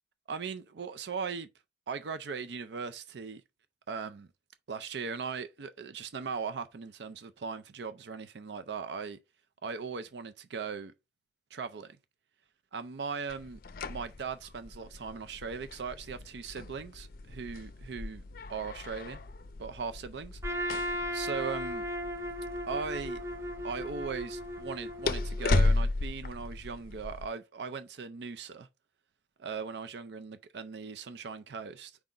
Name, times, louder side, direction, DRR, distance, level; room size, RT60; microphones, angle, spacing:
voice 1, 0.3-1.5 1.9-3.4 3.9-4.3 4.7-9.2 9.6-10.9 11.5-12.0 12.7-13.6 13.9-18.2 18.5-19.2 19.6-20.4 21.1-21.8 22.7-23.2 23.6-28.7 29.4-32.0, right 5 dB, 70° right, 0.5 m, -39 dB
sound 1, 13.3-27.3, left 2 dB, 55° left, 0.5 m, -35 dB
Trumpet, 20.4-25.5, equal, 15° right, 0.8 m, -36 dB
4.7 x 3.8 x 5.3 m
head